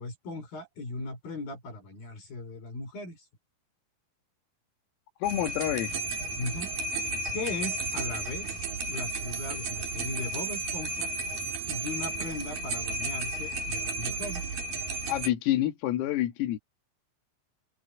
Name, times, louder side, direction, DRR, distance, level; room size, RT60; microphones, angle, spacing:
voice 1, 0.0-3.2 6.4-6.7 7.3-8.6 8.9-11.1 11.7-14.4, left 2 dB, 45° left, 6.2 m, -38 dB
voice 2, 5.2-6.0 15.1-16.6, left 13 dB, 85° left, 4.5 m, -28 dB
sound 1, 5.2-15.3, right 2 dB, 50° right, 3.9 m, -33 dB
open air
omnidirectional pair, 5.9 m